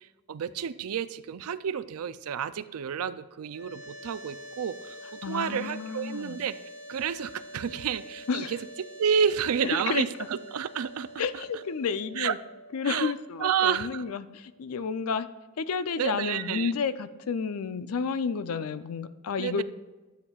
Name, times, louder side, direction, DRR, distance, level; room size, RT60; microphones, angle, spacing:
voice 1, 0.0-6.6 6.9-11.4 12.2-12.3 12.8-13.1 13.4-14.0 16.0-16.7 19.4-19.6, right 7 dB, 85° right, 15 dB, 0.4 m, -30 dB
sound 1, 3.5-14.6, equal, 65° right, 1.3 m, -46 dB
voice 2, 5.2-6.4 8.3-8.5 9.9-10.0 11.2-12.4 12.7-15.3 15.6-19.6, left 5 dB, 80° left, 13 dB, 0.5 m, -31 dB
12.5 x 8.2 x 2.4 m, 1.2 s
head